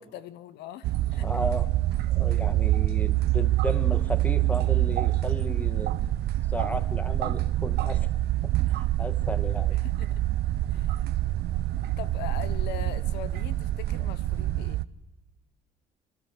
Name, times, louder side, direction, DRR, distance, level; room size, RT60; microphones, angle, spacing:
voice 1, 0.0-1.3 9.7-10.3 10.7-11.1 11.8-14.9, left 11 dB, 80° left, 1.0 m, -41 dB
sound 1, 0.8-14.8, right 15 dB, 75° right, 0.8 m, -26 dB
voice 2, 1.2-1.7 2.1-5.9 6.5-8.1 8.7-9.8, left 1 dB, 10° left, 1.8 m, -34 dB
29.0 x 13.0 x 8.1 m
cardioid pair, 110°, 17 cm